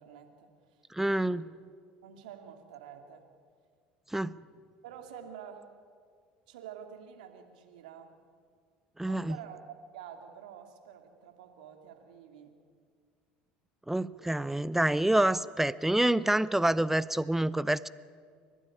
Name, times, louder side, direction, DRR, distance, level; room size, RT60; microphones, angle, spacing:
voice 1, 0.0-0.8 1.2-1.5 2.0-3.2 4.8-5.7 6.5-8.1 9.0-12.5, right 8 dB, 75° right, 5 dB, 2.6 m, -48 dB
voice 2, 0.9-1.5 4.1-4.4 9.0-9.4 13.9-17.9, right 1 dB, 5° right, 18 dB, 0.6 m, -27 dB
29.5 x 12.0 x 9.9 m, 2.1 s
hypercardioid pair, 70°, 5 cm